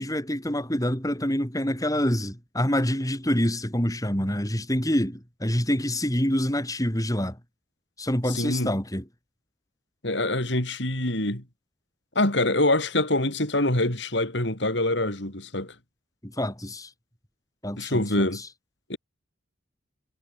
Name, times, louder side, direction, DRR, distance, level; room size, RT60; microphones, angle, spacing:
voice 1, 0.0-7.4 8.0-9.0 16.2-16.9 17.6-18.5, equal, 20° left, 6.9 m, -26 dB
voice 2, 8.3-8.7 10.0-11.4 12.1-15.7 17.8-18.4 18.9-19.0, left 1 dB, 65° left, 5.1 m, -25 dB
head